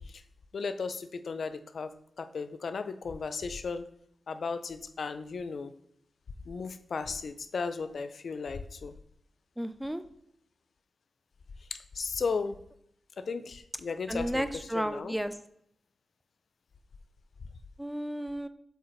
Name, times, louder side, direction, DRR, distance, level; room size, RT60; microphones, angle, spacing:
voice 1, 0.5-1.9 2.2-3.9 4.3-5.7 6.5-8.9 11.7-12.6 13.2-14.4 14.7-15.2, left 4 dB, 75° left, 11 dB, 0.5 m, -35 dB
voice 2, 9.6-10.0 14.1-15.3 17.8-18.5, equal, 5° right, 11 dB, 0.5 m, -33 dB
7.7 x 4.8 x 3.1 m, 0.70 s
wide cardioid pair, 75°, 0 cm